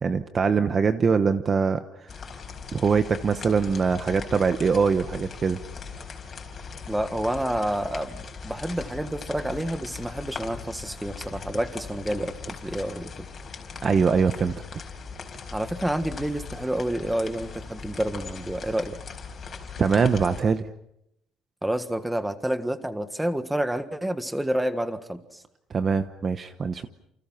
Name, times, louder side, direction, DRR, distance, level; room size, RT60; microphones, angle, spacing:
voice 1, 0.0-2.1 2.7-5.6 13.8-14.5 19.8-20.6 25.7-26.9, right 5 dB, 25° right, 10 dB, 1.0 m, -23 dB
sound 1, 2.1-20.4, left 5 dB, 25° left, 4.5 m, -39 dB
voice 2, 6.9-12.3 12.6-13.1 15.5-19.0 21.6-25.4, right 1 dB, 5° right, 10 dB, 1.6 m, -29 dB
30.0 x 28.5 x 5.8 m, 0.79 s
cardioid pair, 175°, 0 cm